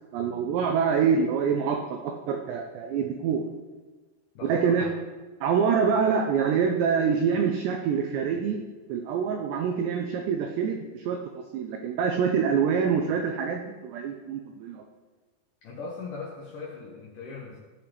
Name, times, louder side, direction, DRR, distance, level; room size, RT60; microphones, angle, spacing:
voice 1, 0.1-3.5 4.4-4.9 5.4-8.6 8.9-14.8, right 6 dB, 85° right, 3 dB, 2.5 m, -26 dB
voice 2, 4.3-4.9 15.6-17.6, left 4 dB, 85° left, -4 dB, 1.8 m, -38 dB
15.5 x 7.3 x 3.4 m, 1.3 s
omnidirectional pair, 5.7 m